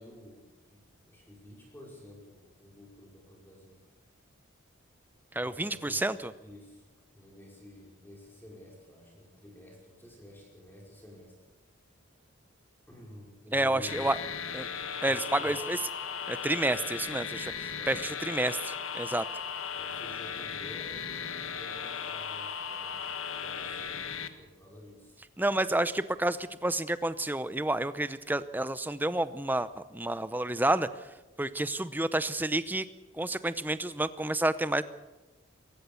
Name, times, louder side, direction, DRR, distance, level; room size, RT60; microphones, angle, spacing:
voice 1, 0.0-3.8 5.4-6.0 6.4-6.8 7.1-11.3 12.9-14.2 15.0-15.6 17.7-18.0 19.7-25.2, left 1 dB, 10° left, -2 dB, 5.3 m, -50 dB
voice 2, 5.3-6.3 13.5-14.2 14.5-14.7 15.0-15.8 16.3-19.3 25.4-31.1 31.4-32.9 33.1-34.8, right 1 dB, 10° right, 14 dB, 0.7 m, -30 dB
sound 1, 13.9-24.3, left 7 dB, 80° left, 1.4 m, -37 dB
22.5 x 18.5 x 7.1 m, 1.1 s
head